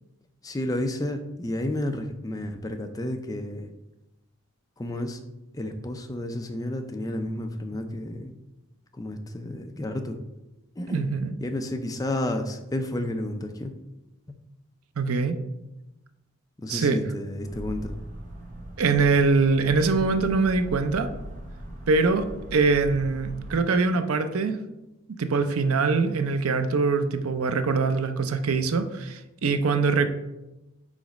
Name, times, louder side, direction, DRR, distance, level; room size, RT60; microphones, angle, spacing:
voice 1, 0.4-3.7 4.8-5.2 5.5-8.3 8.9-10.2 10.8-11.1 11.4-13.7 16.6-17.9, left 1 dB, 15° left, 6 dB, 0.4 m, -31 dB
voice 2, 10.9-11.3 15.0-15.3 16.7-17.0 18.8-21.1 21.9-22.3 22.5-24.6 25.2-30.1, right 4 dB, 75° right, 9 dB, 0.5 m, -23 dB
sound 1, 17.4-23.6, equal, 35° right, 0.7 m, -39 dB
5.0 x 4.0 x 5.1 m, 0.98 s
head